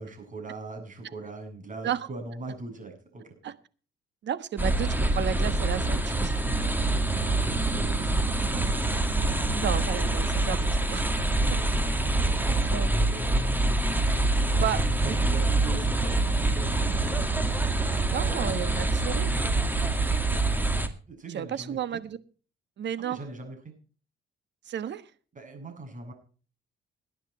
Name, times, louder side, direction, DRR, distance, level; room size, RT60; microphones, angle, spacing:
voice 1, 0.0-3.3 7.2-7.6 8.5-9.0 11.4-13.8 14.5-14.6 15.0-17.4 18.7-18.9 21.1-22.0 23.0-23.6 25.3-26.1, right 2 dB, 40° right, 3 dB, 7.7 m, -41 dB
voice 2, 4.2-6.4 7.7-8.4 9.5-11.1 12.7-12.9 14.6-14.8 15.1-15.2 18.0-19.3 21.3-22.2 22.8-23.2 24.7-25.0, right 9 dB, 65° right, 14 dB, 1.3 m, -32 dB
sound 1, 4.6-20.9, right 2 dB, 10° right, 2.2 m, -25 dB
19.0 x 10.0 x 4.4 m, 0.39 s
cardioid pair, 90°, 20 cm